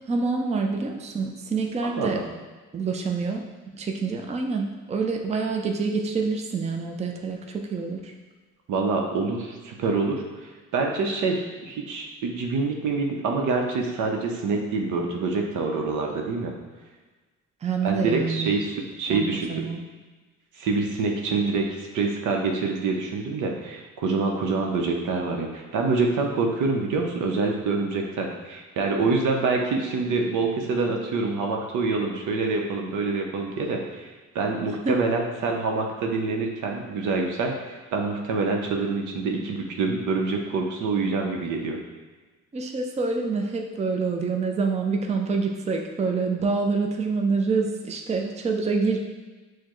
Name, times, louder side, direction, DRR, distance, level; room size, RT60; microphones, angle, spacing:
voice 1, 0.1-2.2 2.7-3.4 3.7-8.1 17.6-18.6 19.1-19.8 34.8-35.0 42.5-49.0, right 4 dB, 20° right, 2 dB, 0.4 m, -26 dB
voice 2, 1.8-2.2 8.7-10.2 10.7-16.5 17.8-19.6 20.6-34.1 34.3-41.8, right 3 dB, 80° right, 1 dB, 0.8 m, -26 dB
6.5 x 2.2 x 3.0 m, 1.3 s
cardioid pair, 90°, 30 cm